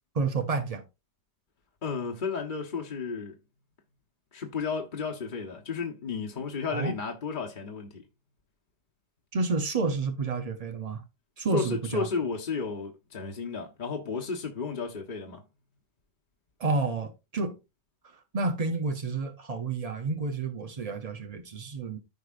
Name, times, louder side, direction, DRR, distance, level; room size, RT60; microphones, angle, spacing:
voice 1, 0.1-0.8 6.7-6.9 9.3-11.0 11.4-12.1 16.6-17.6 18.1-22.0, right 3 dB, 75° right, 0.3 m, -30 dB
voice 2, 1.8-3.4 4.3-8.0 11.5-15.4, left 5 dB, 35° left, 1.0 m, -33 dB
14.0 x 4.8 x 2.5 m
omnidirectional pair, 1.8 m